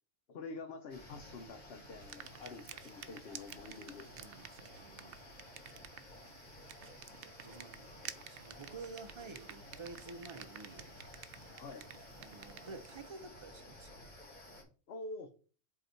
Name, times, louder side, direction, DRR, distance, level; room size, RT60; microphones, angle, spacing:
voice 1, 0.3-4.1 11.5-11.9 14.9-15.3, left 3 dB, 70° left, 1.0 m, -47 dB
sound 1, 0.9-14.6, left 1 dB, 45° left, 1.8 m, -54 dB
sound 2, 2.0-13.1, right 9 dB, 65° right, 0.7 m, -52 dB
voice 2, 4.1-5.5 7.2-7.9 8.3-11.0 12.2-14.1, right 3 dB, 40° right, 0.5 m, -51 dB
7.7 x 2.9 x 4.5 m
omnidirectional pair, 1.1 m